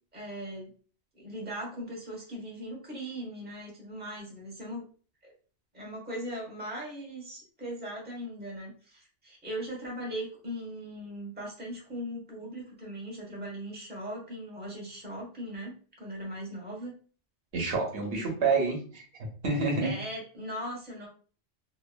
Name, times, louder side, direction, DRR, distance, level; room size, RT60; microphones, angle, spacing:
voice 1, 0.1-0.7 1.1-4.9 5.2-5.3 5.7-16.9 18.0-18.2 19.8-21.1, equal, 10° right, -3 dB, 0.9 m, -39 dB
voice 2, 17.5-19.0 19.4-20.0, right 4 dB, 70° right, 1 dB, 1.1 m, -28 dB
3.0 x 2.2 x 2.2 m, 0.40 s
omnidirectional pair, 1.2 m